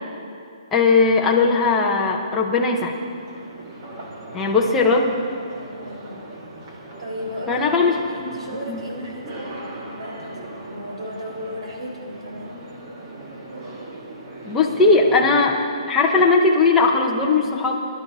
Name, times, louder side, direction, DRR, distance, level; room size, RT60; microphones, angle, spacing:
voice 1, 0.7-2.9 4.3-5.2 7.5-7.9 8.7-8.8 14.4-15.6 15.9-17.8, left 4 dB, 5° left, -2 dB, 0.8 m, -18 dB
sound 1, 2.9-15.5, right 2 dB, 30° right, 1.5 m, -39 dB
voice 2, 5.7-6.3 6.6-12.5, equal, 65° right, -1 dB, 4.1 m, -35 dB
22.5 x 11.5 x 4.0 m, 2.6 s
hypercardioid pair, 180°, 3 cm